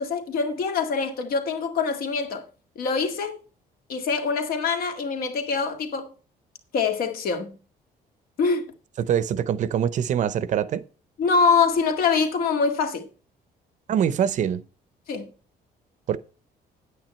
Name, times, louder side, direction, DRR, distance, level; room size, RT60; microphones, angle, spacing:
voice 1, 0.0-2.5 2.8-3.4 3.9-6.1 6.7-7.6 8.4-8.7 11.2-13.1 15.1-15.3, left 5 dB, 60° left, 1.9 m, -24 dB
voice 2, 9.0-10.8 13.9-14.6 16.1-16.2, right 9 dB, 50° right, 0.7 m, -24 dB
9.5 x 9.1 x 4.3 m
cardioid pair, 165°, 17 cm